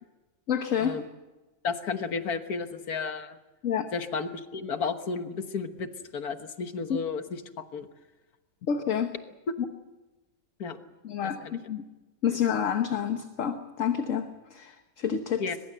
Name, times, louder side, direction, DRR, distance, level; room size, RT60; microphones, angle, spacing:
voice 1, 0.5-0.9 3.6-3.9 6.9-7.0 8.7-9.1 11.0-11.8 12.2-15.4, left 8 dB, 60° left, 7 dB, 1.5 m, -28 dB
voice 2, 1.6-3.4 3.9-7.9 10.6-10.8 11.2-11.6 15.4-15.6, left 5 dB, 85° left, 8 dB, 1.8 m, -33 dB
22.0 x 21.5 x 7.8 m, 1.1 s
omnidirectional pair, 1.6 m